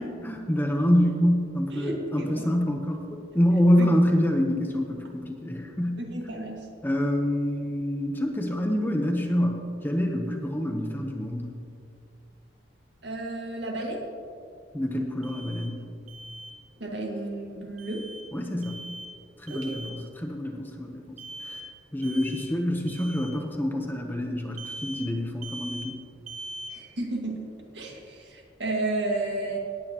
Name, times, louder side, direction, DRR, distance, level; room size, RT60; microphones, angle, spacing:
voice 1, 0.0-3.0 3.3-6.0 6.8-11.6 14.7-15.8 18.3-18.8 19.4-21.1 21.5-21.6 21.9-26.0, equal, 10° left, 2 dB, 0.9 m, -26 dB
voice 2, 1.7-2.5 3.8-3.9 6.0-6.7 13.0-14.1 16.8-18.0 19.5-19.8 26.7-27.5 27.7-29.6, right 2 dB, 65° right, -1 dB, 2.0 m, -32 dB
Alarm, 15.2-15.7 16.1-16.5 17.8-18.2 18.6-19.1 19.5-20.0 21.2-21.7 22.0-22.5 22.9-23.3 24.6-25.1 25.4-25.9 26.3-26.7, right 1 dB, 40° right, 1.0 m, -40 dB
18.0 x 8.9 x 3.0 m, 2.4 s
head